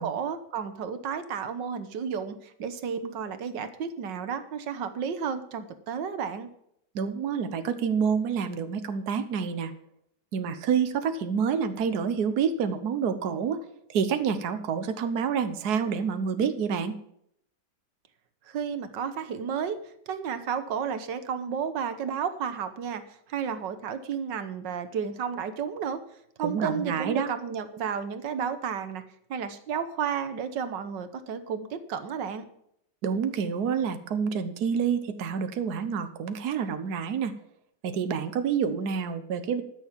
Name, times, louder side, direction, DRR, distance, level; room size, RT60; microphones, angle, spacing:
voice 1, 0.0-6.5 18.5-19.8 20.1-26.0 26.4-29.0 29.3-32.5, right 7 dB, 85° right, 11 dB, 1.8 m, -32 dB
voice 2, 6.9-9.7 10.3-13.6 13.9-17.0 26.4-27.3 33.0-37.3 37.8-39.6, right 6 dB, 65° right, 10 dB, 1.5 m, -28 dB
13.0 x 6.7 x 7.3 m, 0.73 s
omnidirectional pair, 1.9 m